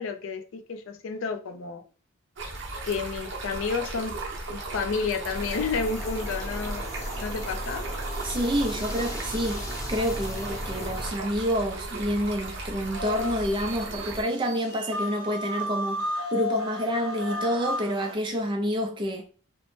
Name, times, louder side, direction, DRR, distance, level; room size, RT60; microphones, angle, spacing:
voice 1, 0.0-1.8 2.8-4.2 4.5-6.9 7.2-7.8, left 5 dB, 65° left, 0.4 m, -31 dB
Stream, 2.4-14.2, right 3 dB, 55° right, 0.7 m, -36 dB
sound 1, 5.3-11.1, equal, 15° left, 0.7 m, -35 dB
voice 2, 8.2-19.3, equal, 20° right, 0.4 m, -28 dB
sound 2, 12.9-18.1, left 1 dB, 90° right, 0.8 m, -33 dB
2.9 x 2.0 x 3.1 m
head